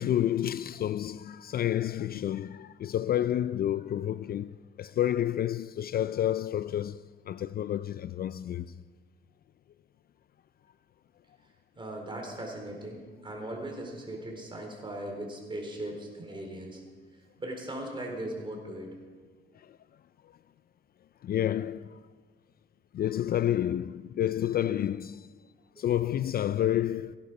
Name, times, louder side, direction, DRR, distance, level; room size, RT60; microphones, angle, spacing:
voice 1, 0.0-7.0 7.3-8.7 21.2-22.0 22.9-25.2 25.8-27.2, left 11 dB, 50° left, 0.4 m, -29 dB
voice 2, 11.8-16.8 17.4-18.9 25.8-25.9, right 1 dB, 25° right, 4.0 m, -38 dB
16.5 x 11.5 x 5.3 m
cardioid pair, 90°, 20 cm